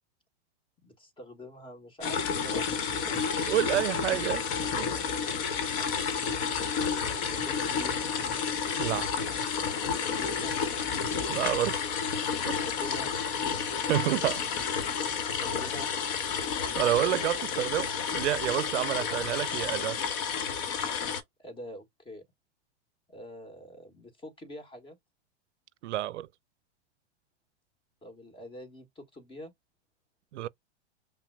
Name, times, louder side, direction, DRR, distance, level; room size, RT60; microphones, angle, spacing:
voice 1, 0.8-3.2 6.9-8.0 9.9-10.5 12.5-13.1 15.0-15.9 21.4-22.2 23.1-25.0 28.0-29.5, left 1 dB, 15° left, 1.6 m, -46 dB
sound 1, 2.0-21.2, left 6 dB, 45° left, 1.2 m, -31 dB
voice 2, 3.5-4.4 4.8-4.9 8.8-9.1 11.3-11.8 12.5-12.6 13.9-14.4 16.8-20.0 25.8-26.3 30.3-30.5, right 13 dB, 85° right, 0.5 m, -29 dB
5.8 x 2.2 x 2.2 m
hypercardioid pair, 130°, 34 cm